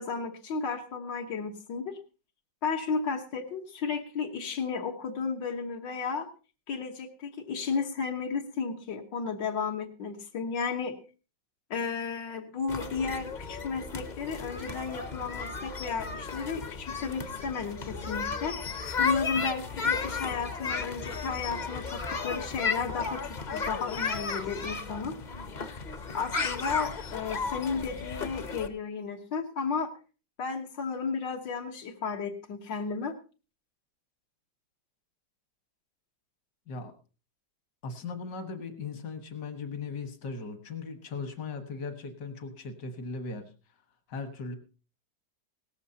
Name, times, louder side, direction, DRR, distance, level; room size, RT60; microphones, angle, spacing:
voice 1, 0.0-2.0 2.6-6.3 6.7-10.9 11.7-18.6 19.0-25.1 26.1-29.9 30.4-33.1, left 5 dB, 90° left, 2 dB, 2.0 m, -33 dB
sound 1, 12.7-28.7, left 5 dB, 45° left, 0.5 m, -34 dB
voice 2, 37.8-43.8 44.1-44.5, left 4 dB, 70° left, 7 dB, 2.1 m, -38 dB
17.5 x 14.5 x 2.8 m, 0.33 s
omnidirectional pair, 1.9 m